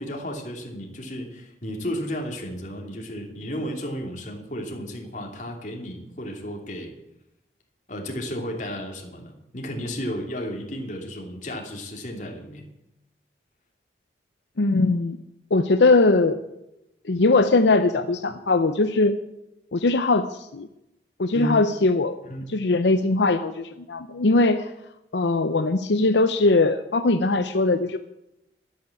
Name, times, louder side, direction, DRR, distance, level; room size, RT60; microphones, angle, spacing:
voice 1, 0.0-7.0 7.9-12.7 21.3-21.6 22.2-22.5, equal, 45° left, 1 dB, 2.9 m, -33 dB
voice 2, 14.6-15.2 15.5-16.4 17.0-19.1 19.7-20.7 21.2-22.2 22.5-24.7 25.1-28.0, left 3 dB, 85° left, 9 dB, 0.7 m, -20 dB
11.5 x 10.0 x 8.3 m, 0.87 s
head